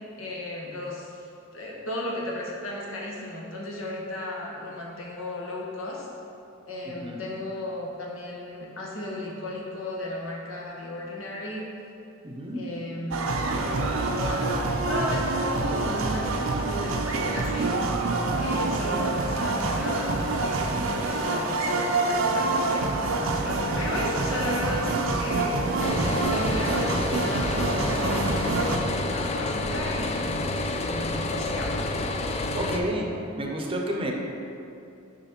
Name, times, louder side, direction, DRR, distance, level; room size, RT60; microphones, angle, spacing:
voice 1, 0.0-6.1 6.6-11.7 12.5-14.4 14.8-17.7 18.4-23.2 23.4-25.7 26.2-30.4 30.7-31.8, left 1 dB, 85° left, -3 dB, 1.2 m, -35 dB
voice 2, 6.8-7.2 12.2-12.7 23.2-23.5 32.5-33.1 33.4-34.1, right 1 dB, 25° right, 1 dB, 0.6 m, -31 dB
sound 1, 13.1-28.8, right 2 dB, 85° right, 0.6 m, -26 dB
sound 2, 25.8-32.8, left 2 dB, 30° left, 0.3 m, -29 dB
5.7 x 5.0 x 4.3 m, 2.7 s
head